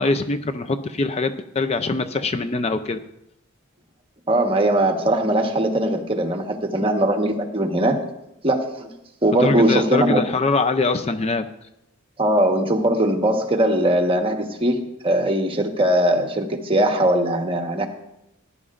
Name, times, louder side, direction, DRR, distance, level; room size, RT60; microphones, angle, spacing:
voice 1, 0.0-3.0 9.3-11.5, left 3 dB, 30° left, 8 dB, 0.4 m, -23 dB
voice 2, 4.3-8.0 8.4-8.9 9.2-10.2 12.2-17.9, right 1 dB, 25° right, 4 dB, 1.2 m, -20 dB
18.5 x 11.0 x 2.5 m, 0.85 s
head